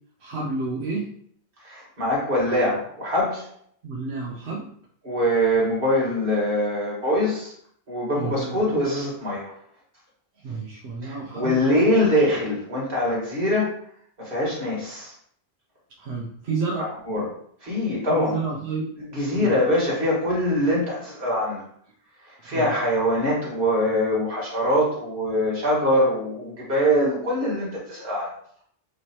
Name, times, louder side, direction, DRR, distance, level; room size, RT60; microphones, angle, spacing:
voice 1, 0.2-1.1 3.8-4.7 8.2-8.8 10.4-11.9 16.0-16.9 18.1-18.9 19.3-19.5 22.4-22.7, right 4 dB, 85° right, -4 dB, 1.0 m, -30 dB
voice 2, 1.6-3.5 5.0-7.5 7.9-9.5 11.0-13.7 14.2-15.1 16.8-17.3 17.6-18.4 19.1-21.6 22.3-28.3, equal, 55° right, -5 dB, 1.8 m, -23 dB
4.6 x 3.1 x 2.9 m, 0.62 s
omnidirectional pair, 1.1 m